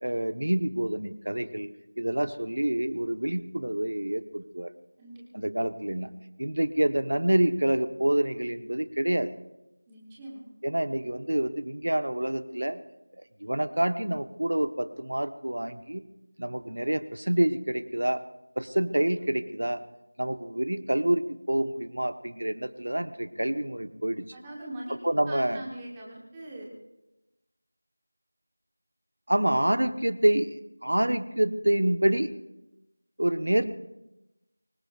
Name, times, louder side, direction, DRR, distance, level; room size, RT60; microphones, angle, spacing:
voice 1, 0.0-1.7 2.0-4.7 5.3-6.1 6.4-9.3 10.6-12.8 13.2-16.0 16.4-18.2 18.6-19.8 20.2-24.2 25.0-25.6 29.3-30.6 30.8-32.3 33.2-33.7, right 1 dB, 85° right, 10 dB, 1.3 m, -27 dB
voice 2, 9.9-10.4 24.3-26.7, right 1 dB, 5° right, -4 dB, 1.4 m, -41 dB
24.5 x 20.0 x 2.6 m, 0.95 s
figure-of-eight pair, 180°, 0 cm